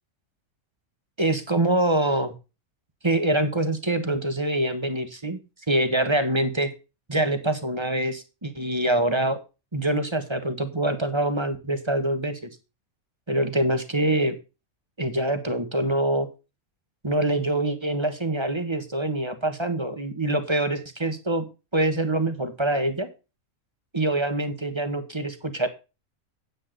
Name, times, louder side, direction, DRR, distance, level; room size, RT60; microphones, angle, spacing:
voice 1, 1.2-2.3 3.0-5.4 5.7-6.7 7.1-9.4 9.7-12.5 13.3-14.3 15.0-16.3 17.0-21.4 21.7-23.1 23.9-25.7, right 1 dB, 20° right, 9 dB, 1.5 m, -25 dB
9.8 x 9.3 x 3.9 m, 0.29 s
omnidirectional pair, 1.5 m